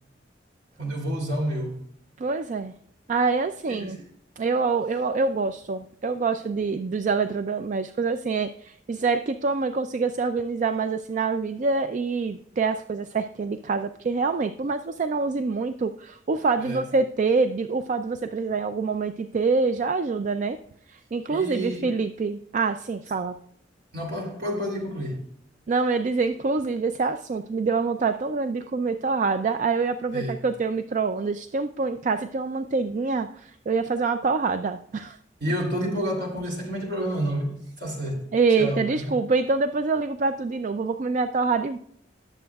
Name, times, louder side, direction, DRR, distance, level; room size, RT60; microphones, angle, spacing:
voice 1, 0.8-1.8 3.7-4.0 16.6-16.8 21.3-21.9 23.9-25.2 30.1-30.4 35.4-38.3 38.5-39.2, equal, 65° right, 3.0 m, -29 dB
voice 2, 2.2-2.7 3.1-4.0 4.4-20.6 20.9-23.4 25.7-35.2 38.3-41.8, right 4 dB, 45° right, 0.4 m, -26 dB
19.0 x 7.2 x 2.3 m
head